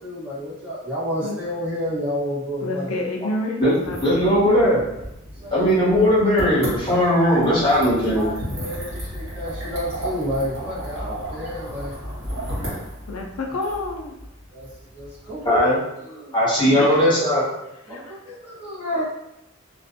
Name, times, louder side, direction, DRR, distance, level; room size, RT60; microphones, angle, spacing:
voice 1, 0.0-2.9 5.4-6.0 7.6-11.9 14.5-14.7 14.9-16.4 17.9-19.0, equal, 10° right, -11 dB, 1.0 m, -30 dB
voice 2, 2.6-4.7 13.1-14.1 16.7-17.1 17.9-18.2, left 2 dB, 85° left, 1 dB, 0.4 m, -29 dB
sound 1, 3.7-15.6, equal, 65° right, 1.3 m, -34 dB
voice 3, 4.0-4.8 5.5-8.2 15.4-15.8 16.3-17.5, equal, 25° left, -8 dB, 1.1 m, -18 dB
2.4 x 2.3 x 2.5 m, 0.84 s
head